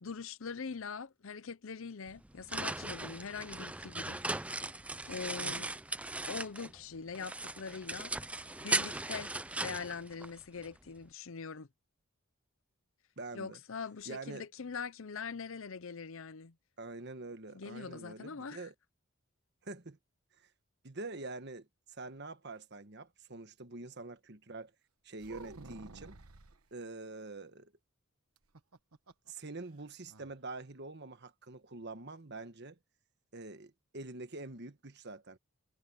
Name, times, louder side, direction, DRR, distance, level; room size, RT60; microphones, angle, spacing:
voice 1, 0.0-4.6 5.1-5.7 6.3-8.1 8.6-9.3 9.6-11.7 13.3-16.5 17.5-18.7, left 5 dB, 65° left, 0.7 m, -43 dB
sound 1, 2.1-6.8 7.1-10.7, right 2 dB, 5° right, 0.4 m, -38 dB
voice 2, 13.2-13.6 14.1-14.4 16.8-18.7 19.6-20.0 20.4-20.5 20.8-24.7 25.0-26.2 26.7-27.7 29.3-32.8 33.3-35.4, right 2 dB, 50° right, 1.3 m, -45 dB
sound 2, 25.2-26.6 28.4-29.3 29.6-29.7 30.1-30.3, right 3 dB, 85° right, 1.2 m, -51 dB
head